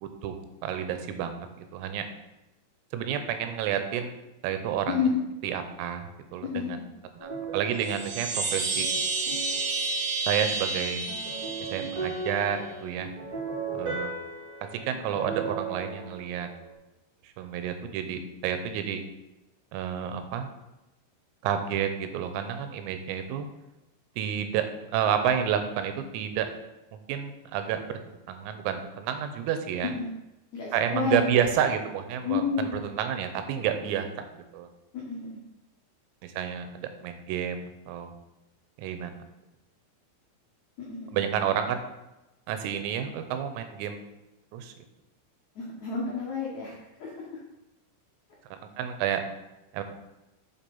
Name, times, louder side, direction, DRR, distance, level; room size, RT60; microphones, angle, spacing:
voice 1, 0.0-0.4 0.6-2.1 2.9-4.1 4.4-5.0 5.4-6.8 7.2-8.9 10.3-11.0 11.6-13.1 13.7-14.1 14.7-16.5 17.2-19.0 19.7-20.5 21.4-23.5 24.2-24.7 24.9-26.5 26.9-29.9 30.7-34.1 34.3-34.7 36.2-38.1 38.8-39.1 41.1-41.8 42.5-44.0 44.5-44.7 48.5-49.2 49.7-49.8, right 9 dB, 85° right, 8 dB, 3.6 m, -30 dB
voice 2, 6.4-6.8 29.8-30.1 30.5-31.4 32.2-32.8 34.9-35.3 40.8-41.2 45.5-47.4, left 5 dB, 80° left, -4 dB, 1.6 m, -30 dB
sound 1, 7.2-10.3 11.1-16.7, right 4 dB, 35° right, 2.3 m, -37 dB
Chime, 7.7-12.4, right 3 dB, 65° right, 3.1 m, -30 dB
7.4 x 7.3 x 5.4 m, 0.97 s
omnidirectional pair, 5.9 m